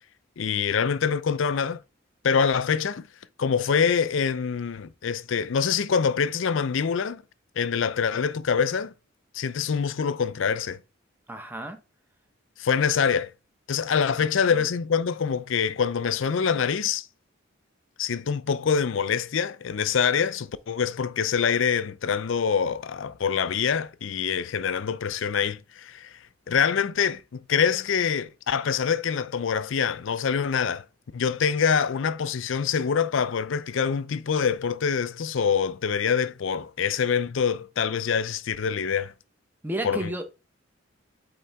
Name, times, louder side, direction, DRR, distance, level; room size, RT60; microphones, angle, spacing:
voice 1, 0.4-1.8 2.2-3.1 3.4-7.2 7.6-8.9 9.3-10.8 12.6-13.3 13.7-17.1 18.0-26.2 26.5-30.8 31.1-39.1 39.8-40.1, left 6 dB, 70° left, 0.5 m, -25 dB
voice 2, 11.3-11.8 14.5-14.6 39.6-40.2, right 1 dB, 10° right, 0.8 m, -32 dB
8.5 x 3.8 x 3.4 m
head